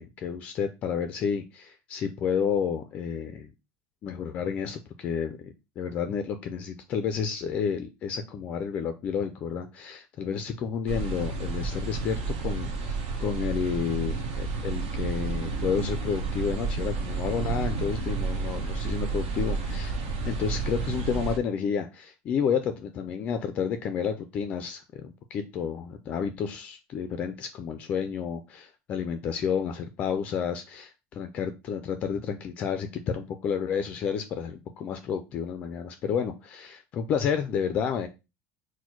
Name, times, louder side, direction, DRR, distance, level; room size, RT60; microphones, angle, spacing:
voice 1, 0.0-3.5 4.0-19.9 20.3-38.1, left 7 dB, 30° left, 8 dB, 0.3 m, -31 dB
sound 1, 10.9-21.4, right 4 dB, 75° right, 1.0 m, -31 dB
4.2 x 2.1 x 4.4 m, 0.26 s
cardioid pair, 175°, 4 cm